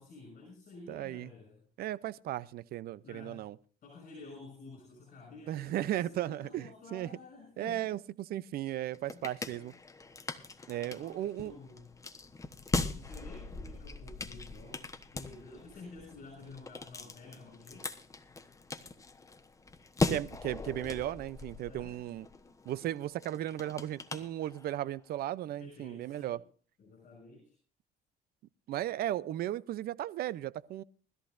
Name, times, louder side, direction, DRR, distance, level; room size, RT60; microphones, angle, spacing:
voice 1, 0.0-1.6 3.0-3.5 3.8-7.9 9.1-9.7 10.8-11.9 12.9-18.0 21.6-22.0 25.6-26.4 26.8-27.6, left 3 dB, 50° left, 6.1 m, -51 dB
voice 2, 0.9-1.3 1.8-3.6 5.5-7.1 7.6-9.7 10.7-11.5 20.1-22.3 22.7-26.4 28.7-30.8, right 13 dB, 65° right, 0.6 m, -36 dB
sound 1, 8.7-24.9, left 3 dB, 20° left, 1.1 m, -40 dB
20.5 x 13.5 x 2.6 m
cardioid pair, 110°, 17 cm